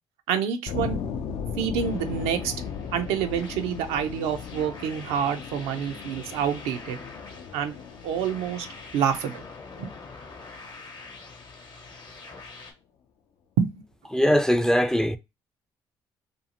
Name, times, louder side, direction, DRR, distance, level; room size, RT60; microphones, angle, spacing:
voice 1, 0.3-1.0 1.6-2.5 2.9-7.0 7.5-7.8 8.0-8.7 8.9-9.4 9.8-9.9 13.6-13.7, right 8 dB, 80° right, 0.4 m, -27 dB
sound 1, 0.7-11.4, left 7 dB, 70° left, 0.4 m, -37 dB
sound 2, 1.8-12.7, left 3 dB, 45° left, 0.8 m, -45 dB
voice 2, 14.1-15.2, equal, 5° left, 0.3 m, -21 dB
2.6 x 2.4 x 2.8 m
supercardioid pair, 55°, 10 cm